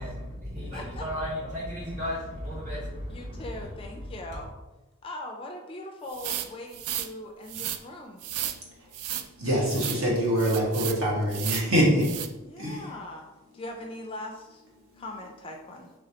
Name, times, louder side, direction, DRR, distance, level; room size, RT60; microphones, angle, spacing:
voice 1, 0.0-4.5, equal, 35° right, -5 dB, 1.3 m, -35 dB
voice 2, 0.7-1.0 3.1-4.5 5.0-8.2 12.4-13.2 13.5-14.6 15.0-15.9, left 1 dB, 25° left, 2 dB, 0.3 m, -40 dB
sound 1, 6.1-7.1 7.5-7.8 8.2-8.6 8.9-9.3 9.7-10.0 10.4-11.0 11.3-11.7 12.0-12.3, right 11 dB, 90° right, 0.3 m, -33 dB
voice 3, 9.1-12.2 12.6-12.9 14.9-15.0, equal, 70° right, -4 dB, 1.2 m, -25 dB
4.1 x 3.2 x 2.8 m, 1.1 s
head